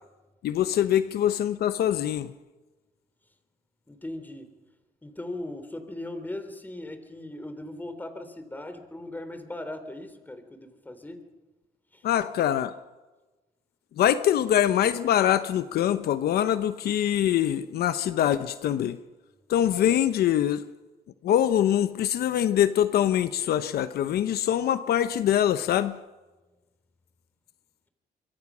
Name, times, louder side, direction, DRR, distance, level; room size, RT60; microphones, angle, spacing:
voice 1, 0.4-2.3 12.0-12.7 14.0-19.0 19.5-20.6 21.2-26.0, left 11 dB, 70° left, 12 dB, 0.9 m, -24 dB
voice 2, 3.9-4.5 5.0-11.2 11.9-12.0, left 1 dB, 10° left, 9 dB, 3.3 m, -38 dB
25.0 x 23.5 x 6.2 m, 1.2 s
cardioid pair, 110°, 17 cm